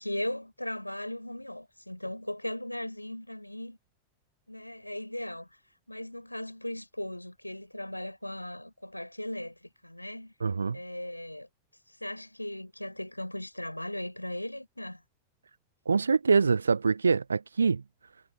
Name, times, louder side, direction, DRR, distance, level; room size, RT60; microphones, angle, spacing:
voice 1, 0.0-3.8 4.5-5.5 5.9-10.3 10.7-11.5 11.9-15.0, left 1 dB, 85° left, 5.1 m, -38 dB
voice 2, 10.4-10.8 15.9-17.8, right 5 dB, 75° right, 0.7 m, -24 dB
figure-of-eight pair, 90°, 0 cm